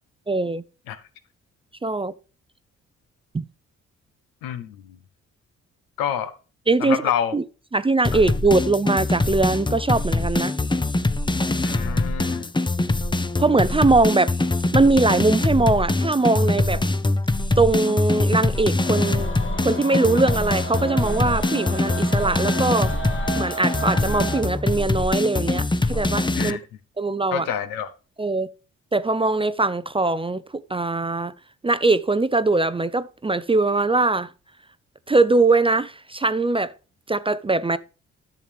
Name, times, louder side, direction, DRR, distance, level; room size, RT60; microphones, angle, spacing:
voice 1, 0.3-0.6 1.8-2.1 3.3-3.4 6.7-7.0 7.3-7.4 7.7-10.5 12.8-12.9 13.4-14.3 14.7-16.8 17.6-19.3 19.6-22.9 23.4-26.6 27.0-27.5 28.2-28.5 28.9-31.3 31.6-34.3 35.1-36.7 37.1-37.8, right 3 dB, 15° right, 0.5 m, -21 dB
voice 2, 4.4-5.0 6.0-6.3 6.8-7.3 11.6-12.5 26.3-26.6 27.3-27.9, left 9 dB, 75° left, 1.0 m, -27 dB
sound 1, 8.0-26.5, left 2 dB, 15° left, 0.8 m, -23 dB
sound 2, 18.8-24.4, right 1 dB, 35° left, 2.1 m, -33 dB
12.0 x 7.1 x 3.4 m
hypercardioid pair, 40°, 36 cm